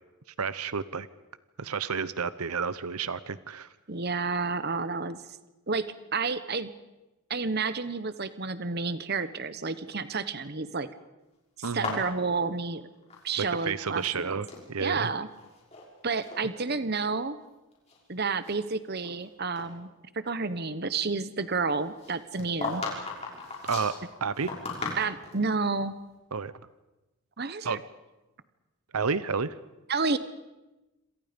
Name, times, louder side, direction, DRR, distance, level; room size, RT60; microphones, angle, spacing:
voice 1, 0.4-1.1 1.6-3.7 11.6-12.0 13.4-15.1 23.6-24.5 26.3-26.5 27.6-27.8 28.9-29.5, right 5 dB, 85° right, 15 dB, 0.9 m, -31 dB
voice 2, 3.9-5.2 5.7-6.7 7.3-10.9 11.6-12.9 13.2-14.4 14.8-15.3 16.0-17.4 18.1-19.9 20.1-22.8 25.0-26.0 27.4-27.8 29.9-30.2, right 4 dB, 45° right, 13 dB, 1.1 m, -30 dB
sound 1, 11.6-13.6 13.9-14.7 15.3-15.9 16.2-16.4 17.1-17.2 17.7-19.2 19.6-19.7 22.0-25.4, left 3 dB, 30° left, 6.1 m, -37 dB
27.5 x 26.5 x 5.3 m, 1.0 s
head